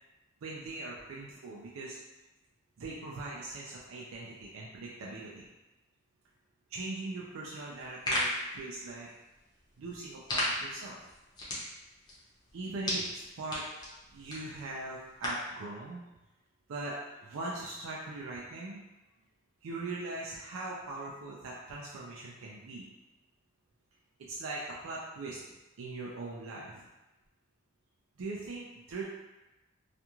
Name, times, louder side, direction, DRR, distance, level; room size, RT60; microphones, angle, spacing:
voice 1, 0.4-2.0 2.8-5.5 6.7-8.3 8.5-9.1 9.8-10.9 12.5-13.6 14.1-16.0 16.7-18.8 19.6-22.9 24.3-25.4 25.8-26.9 28.2-29.0, right 2 dB, 90° right, -4 dB, 0.4 m, -40 dB
sound 1, 7.7-15.5, left 1 dB, 20° left, 0.6 m, -37 dB
2.4 x 2.3 x 2.9 m, 1.0 s
head